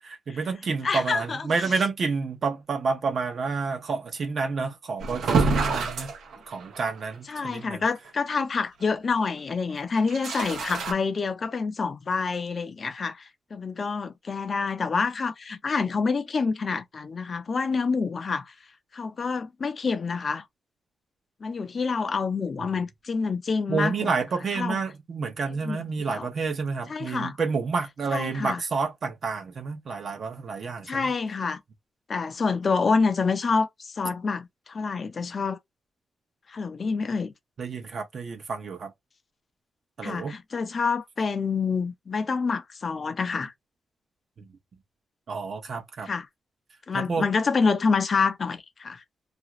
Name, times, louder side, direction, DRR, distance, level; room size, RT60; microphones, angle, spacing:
voice 1, 0.3-6.1 6.5-7.8 23.7-31.1 37.6-38.9 40.0-40.4 45.3-46.1 46.9-47.3, right 4 dB, 50° right, 0.7 m, -29 dB
voice 2, 0.8-1.6 7.3-18.5 18.9-20.4 21.4-24.1 24.6-24.8 25.6-25.8 26.1-26.3 26.9-27.4 28.1-28.6 30.8-31.6 32.1-35.6 36.5-37.3 40.0-43.5 46.1-46.3 46.9-49.0, left 4 dB, 40° left, 0.5 m, -27 dB
sound 1, 5.0-7.0 7.4-7.5 7.9-8.0 9.9-10.9, right 4 dB, 90° right, 0.7 m, -26 dB
2.5 x 2.3 x 2.9 m
wide cardioid pair, 130°, 0 cm